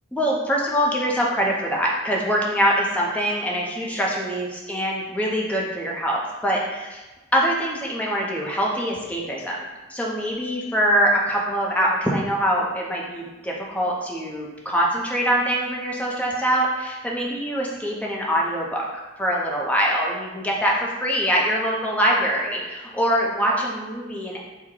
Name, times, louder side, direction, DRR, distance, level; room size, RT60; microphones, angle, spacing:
voice 1, 0.1-7.0 7.3-9.6 9.9-18.9 19.2-24.4, equal, 5° left, -3 dB, 0.5 m, -23 dB
4.5 x 2.1 x 3.7 m, 1.1 s
head